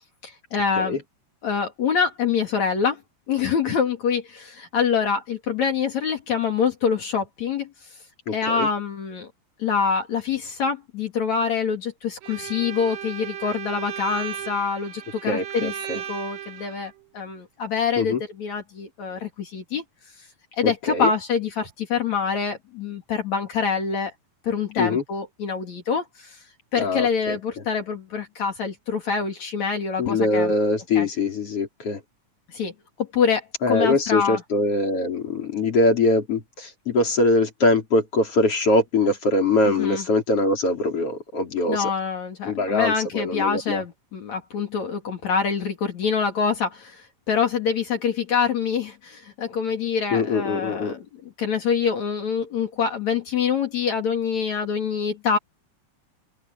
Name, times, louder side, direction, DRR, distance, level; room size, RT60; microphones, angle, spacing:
voice 1, 0.2-1.0 1.4-3.0 3.3-7.7 8.3-9.3 9.6-19.8 20.2-20.3 20.5-24.1 24.4-26.4 26.7-30.5 31.0-31.1 32.5-32.7 33.0-34.4 39.8-40.0 41.7-51.1 51.4-55.4, left 6 dB, 60° left, 3.9 m, -25 dB
voice 2, 8.3-8.7 15.3-16.0 18.0-18.2 20.6-21.1 24.8-25.0 26.8-27.4 30.0-32.0 33.6-41.9 42.4-43.8 50.1-50.9, left 2 dB, 45° left, 5.0 m, -22 dB
Bowed string instrument, 12.2-16.9, right 9 dB, 90° right, 3.5 m, -35 dB
open air
omnidirectional pair, 3.6 m